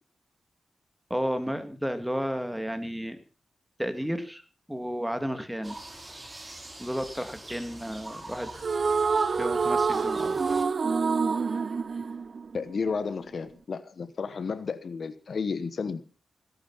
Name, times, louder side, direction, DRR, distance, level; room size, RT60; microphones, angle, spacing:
voice 1, 1.1-3.2 3.8-4.4 4.7-5.8 6.8-8.5 9.4-10.4, equal, 5° right, 2.4 m, -32 dB
sound 1, 5.6-10.7, right 2 dB, 25° right, 4.2 m, -44 dB
sound 2, 8.6-13.0, right 5 dB, 55° right, 0.8 m, -27 dB
voice 2, 12.5-16.0, left 5 dB, 65° left, 1.2 m, -32 dB
17.5 x 11.0 x 5.7 m
cardioid pair, 80°, 0 cm